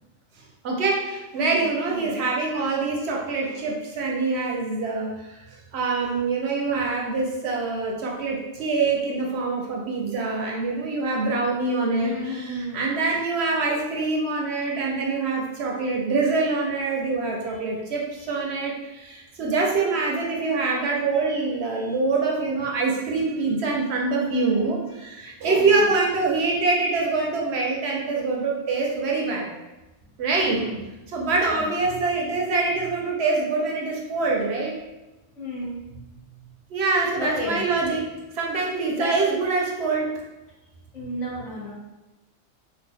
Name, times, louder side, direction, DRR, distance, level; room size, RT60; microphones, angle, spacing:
voice 1, 0.6-5.4 5.7-29.5 30.2-30.6 31.1-34.7 36.7-38.1 38.3-40.1, right 3 dB, 65° right, -1 dB, 0.7 m, -25 dB
voice 2, 1.4-2.2 12.0-12.8 21.8-21.9 25.6-25.8 30.5-30.7 31.5-31.6 35.3-35.8 37.2-37.6 38.9-39.1 40.9-41.7, left 1 dB, 75° left, -5 dB, 1.3 m, -33 dB
2.7 x 2.2 x 3.5 m, 1.1 s
omnidirectional pair, 1.3 m